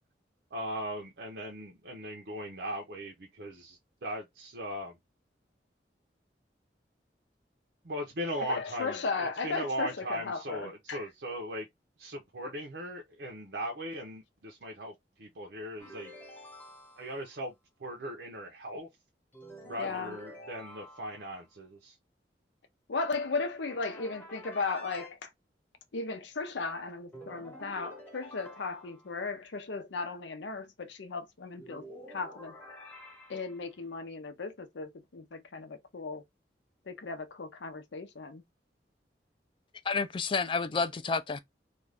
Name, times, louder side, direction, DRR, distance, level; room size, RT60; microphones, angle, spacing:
voice 1, 0.5-5.0 7.8-11.7 12.0-16.1 17.0-17.5 17.8-18.9 19.6-22.0, equal, 70° right, 0.6 m, -38 dB
voice 2, 8.5-11.0 19.8-20.2 22.9-25.3 25.9-32.5 33.3-36.2 36.9-38.4, left 4 dB, 85° left, 0.6 m, -36 dB
sound 1, 15.8-17.4 19.3-21.4 23.7-25.1 27.1-29.2 31.6-33.7, equal, 10° left, 0.9 m, -49 dB
voice 3, 39.8-41.4, left 4 dB, 30° left, 0.3 m, -30 dB
2.5 x 2.3 x 3.2 m
head